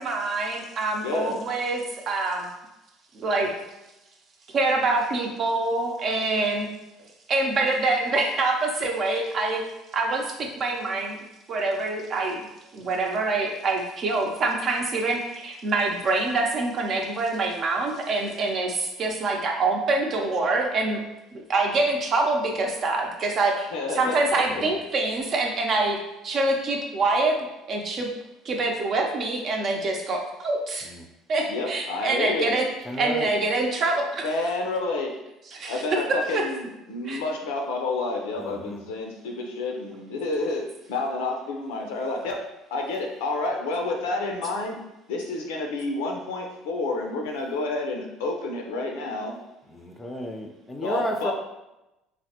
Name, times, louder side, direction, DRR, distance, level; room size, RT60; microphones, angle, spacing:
voice 1, 0.0-2.5 3.1-3.5 4.5-6.7 7.3-9.6 9.9-11.2 11.5-12.5 12.7-21.0 21.3-26.0 26.2-27.4 27.7-28.1 28.4-30.9 31.3-32.7 33.0-34.3 35.5-35.8 36.3-36.4 37.0-37.2, right 3 dB, 50° right, 1 dB, 0.6 m, -25 dB
voice 2, 1.0-1.4 23.7-24.2 31.5-32.5 34.2-35.1 35.7-42.4 42.7-44.8 45.1-49.3 50.8-51.3, left 2 dB, 85° left, 1 dB, 0.5 m, -29 dB
voice 3, 32.9-33.3 38.4-38.8 49.7-51.3, left 1 dB, 20° left, 3 dB, 0.5 m, -32 dB
3.2 x 2.1 x 2.9 m, 0.95 s
supercardioid pair, 75°, 0 cm